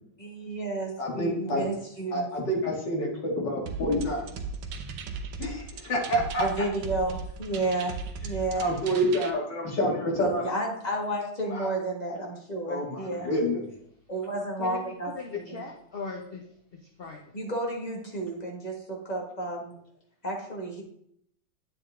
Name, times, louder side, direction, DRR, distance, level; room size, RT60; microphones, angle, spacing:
voice 1, 0.2-2.3 6.4-7.9 8.2-8.7 10.2-13.3 14.1-15.6 17.3-19.7 20.2-20.8, right 2 dB, 20° left, -1 dB, 2.1 m, -32 dB
voice 2, 1.0-1.6 2.1-4.3 5.4-5.6 5.9-6.4 8.5-10.5 11.5-11.7 12.7-13.7, equal, 65° left, -2 dB, 3.0 m, -28 dB
sound 1, 3.7-9.3, right 4 dB, 90° right, 1.6 m, -37 dB
voice 3, 14.6-16.4 16.7-17.3, left 3 dB, 40° left, 2 dB, 0.9 m, -39 dB
9.5 x 8.0 x 3.8 m, 0.71 s
omnidirectional pair, 2.1 m